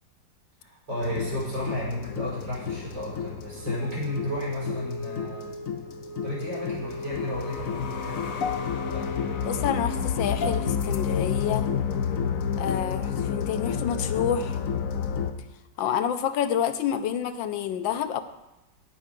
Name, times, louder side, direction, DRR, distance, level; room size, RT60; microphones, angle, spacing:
voice 1, 0.6-5.5 6.2-8.6 8.8-9.2, left 1 dB, 70° right, -6 dB, 5.8 m, -33 dB
sound 1, 1.0-15.3, left 7 dB, 60° left, 0.9 m, -30 dB
Wind instrument woodwind instrument, 3.6-10.4, left 1 dB, 20° right, 2.2 m, -39 dB
voice 2, 9.4-11.7 12.6-14.6 15.8-18.2, left 9 dB, 85° left, 10 dB, 1.4 m, -28 dB
16.5 x 5.6 x 5.2 m, 0.93 s
omnidirectional pair, 2.1 m